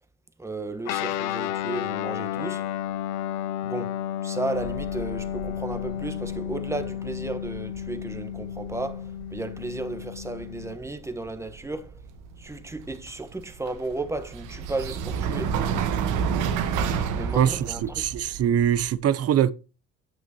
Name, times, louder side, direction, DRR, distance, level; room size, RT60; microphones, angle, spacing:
voice 1, 0.4-2.6 3.6-12.0 12.4-15.6 17.1-18.1, right 2 dB, 10° right, 1.1 m, -34 dB
Guitar, 0.8-10.8, left 11 dB, 85° left, 0.5 m, -32 dB
sound 1, 4.5-18.9, right 7 dB, 85° right, 1.2 m, -32 dB
voice 2, 17.3-19.5, right 10 dB, 50° right, 0.7 m, -23 dB
10.0 x 6.0 x 2.9 m
cardioid pair, 100°, 30 cm